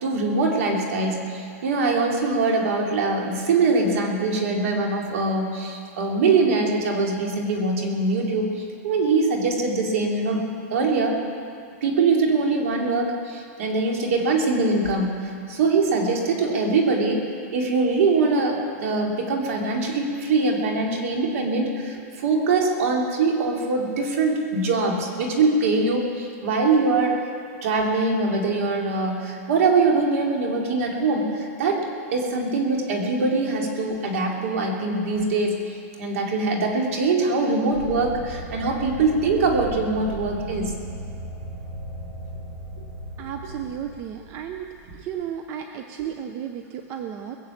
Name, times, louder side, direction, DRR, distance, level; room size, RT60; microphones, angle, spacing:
voice 1, 0.0-11.2 11.8-17.2 17.5-27.2 27.6-35.6 36.0-40.7 46.0-46.1, right 3 dB, 60° right, 0 dB, 2.9 m, -23 dB
sound 1, 37.7-44.9, right 2 dB, 80° right, 3.7 m, -36 dB
voice 2, 43.2-44.7 45.0-47.4, right 9 dB, 30° right, 5 dB, 0.6 m, -33 dB
22.0 x 7.4 x 7.3 m, 2.4 s
supercardioid pair, 165°, 8 cm